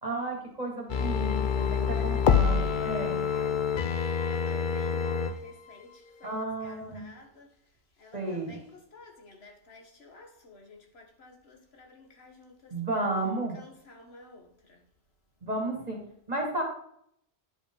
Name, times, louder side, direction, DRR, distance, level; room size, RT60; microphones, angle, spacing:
voice 1, 0.0-3.2 6.2-7.1 8.1-8.6 12.7-13.5 15.4-16.0 16.3-16.6, right 2 dB, 35° right, 2.1 m, -33 dB
sound 1, 0.9-5.3 5.7-5.8, left 6 dB, 50° left, 0.8 m, -26 dB
voice 2, 1.9-2.5 3.3-13.1 13.5-14.8, left 2 dB, 70° left, 1.6 m, -52 dB
9.7 x 5.3 x 3.8 m
omnidirectional pair, 1.1 m